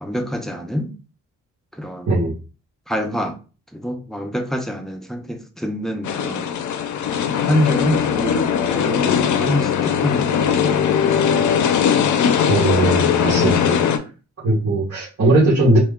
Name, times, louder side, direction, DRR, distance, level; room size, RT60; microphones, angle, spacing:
voice 1, 0.0-1.0 1.7-2.2 2.9-3.4 3.7-6.5 7.5-11.5, left 1 dB, ahead, 0.5 m, -26 dB
sound 1, 6.0-14.0, left 8 dB, 75° left, 0.5 m, -19 dB
voice 2, 12.5-13.8 14.4-15.8, right 2 dB, 50° right, 1.5 m, -18 dB
3.1 x 2.2 x 3.6 m
cardioid pair, 105°, 30 cm